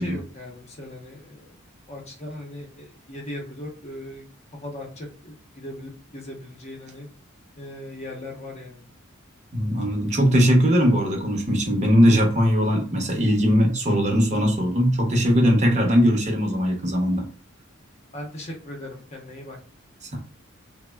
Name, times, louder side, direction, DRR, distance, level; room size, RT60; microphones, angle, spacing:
voice 1, 0.0-1.5 1.9-4.2 4.5-7.1 7.6-8.8 18.1-19.6, left 1 dB, 30° left, 1 dB, 0.7 m, -38 dB
voice 2, 9.5-17.2, equal, 35° right, 2 dB, 0.7 m, -20 dB
3.4 x 2.0 x 2.2 m, 0.40 s
head